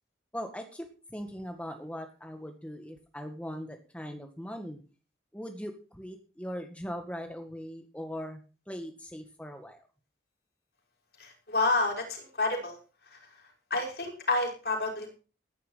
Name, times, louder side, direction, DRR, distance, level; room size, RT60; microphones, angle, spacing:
voice 1, 0.3-4.8 5.3-8.4 8.7-9.8, equal, 5° left, 5 dB, 1.8 m, -40 dB
voice 2, 11.2-12.8 13.7-15.2, left 2 dB, 55° left, 2 dB, 5.6 m, -29 dB
14.5 x 11.5 x 5.7 m, 0.35 s
head